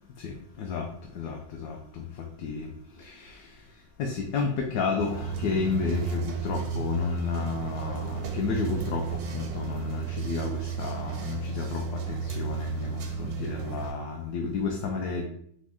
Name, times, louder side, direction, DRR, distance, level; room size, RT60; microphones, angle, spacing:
voice 1, 1.2-1.8 2.4-2.7 4.0-9.0 9.3-11.8 12.1-15.2, left 5 dB, 75° left, 2 dB, 1.0 m, -31 dB
sound 1, 5.0-13.9, right 7 dB, 90° right, 1.2 m, -33 dB
5.1 x 2.3 x 3.5 m, 0.66 s
omnidirectional pair, 1.6 m